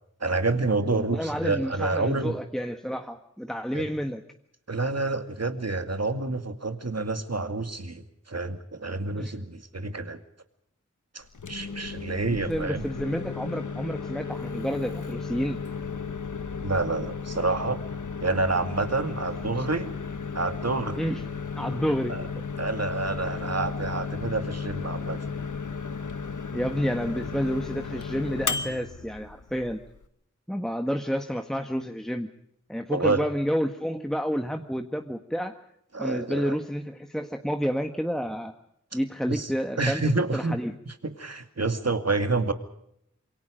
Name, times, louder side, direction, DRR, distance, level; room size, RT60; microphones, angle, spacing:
voice 1, 0.2-2.4 3.7-3.9 4.7-10.2 11.1-12.8 16.6-17.8 18.2-19.9 20.3-21.0 22.1-22.2 22.6-25.3 32.9-33.2 35.9-36.6 39.3-39.5 39.8-40.6 40.9-42.5, right 3 dB, 60° right, 8 dB, 2.3 m, -28 dB
voice 2, 0.9-4.2 9.1-9.4 12.3-15.6 21.0-21.2 21.6-22.4 23.3-23.5 26.5-29.8 30.5-32.3 32.7-35.5 36.0-38.5 38.9-40.0 40.3-40.7, equal, ahead, 5 dB, 1.6 m, -30 dB
Microwave oven, 11.2-30.1, left 5 dB, 90° left, 1.3 m, -34 dB
27.0 x 23.5 x 5.2 m, 0.75 s
wide cardioid pair, 50°, 30 cm